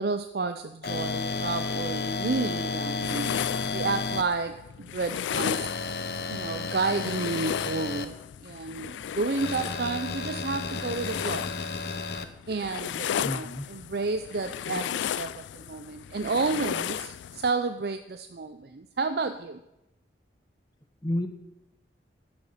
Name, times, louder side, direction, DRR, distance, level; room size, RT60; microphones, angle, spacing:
voice 1, 0.0-3.4 3.7-5.7 6.3-8.2 8.4-11.5 12.5-19.6, right 3 dB, 60° right, 9 dB, 0.5 m, -31 dB
sound 1, 0.8-4.2 5.3-8.1 9.4-12.3, left 4 dB, 60° left, 0.8 m, -32 dB
sound 2, 3.0-17.5, left 9 dB, 90° left, 0.3 m, -35 dB
voice 2, 13.2-13.7 21.0-21.3, left 1 dB, 25° left, 8 dB, 1.0 m, -30 dB
12.5 x 8.7 x 5.8 m, 0.89 s
head